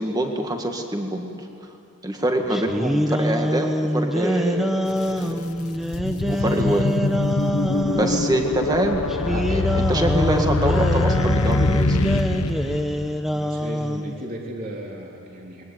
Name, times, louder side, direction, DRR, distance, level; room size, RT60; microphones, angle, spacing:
voice 1, 0.0-1.5 2.0-5.4 6.3-6.9 7.9-12.0, right 1 dB, 15° right, 3 dB, 2.0 m, -25 dB
sound 1, 2.5-8.3 9.1-14.2, equal, ahead, 1.0 m, -25 dB
sound 2, 4.9-5.0 5.5-13.2, left 2 dB, 80° left, 1.1 m, -24 dB
voice 2, 13.3-15.6, right 1 dB, 40° right, -1 dB, 3.2 m, -35 dB
21.5 x 21.0 x 9.4 m, 2.9 s
head